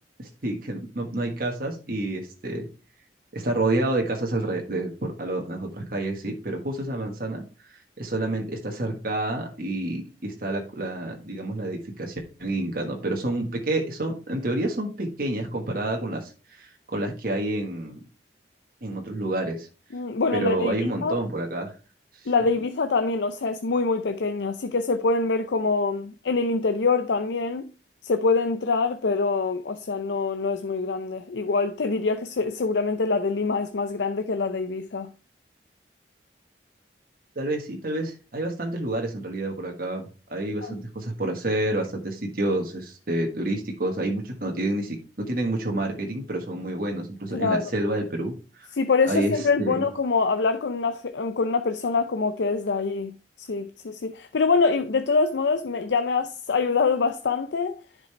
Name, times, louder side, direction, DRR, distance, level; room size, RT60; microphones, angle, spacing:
voice 1, 0.2-2.7 3.3-7.4 7.7-18.0 18.8-19.7 20.3-21.7 22.2-22.3 37.3-48.7 49.0-49.8, right 1 dB, 55° right, 1.5 m, -29 dB
voice 2, 19.9-21.2 22.3-27.7 28.0-35.1 40.6-40.8 47.3-47.7 48.7-57.8, left 4 dB, 75° left, 0.5 m, -25 dB
10.5 x 5.3 x 3.2 m
head